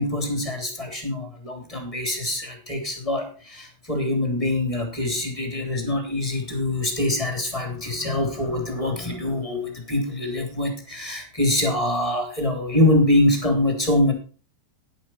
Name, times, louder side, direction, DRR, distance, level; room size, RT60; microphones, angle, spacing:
voice 1, 0.0-14.1, left 1 dB, 10° left, 3 dB, 2.5 m, -24 dB
11.0 x 10.5 x 4.5 m, 0.36 s
omnidirectional pair, 5.0 m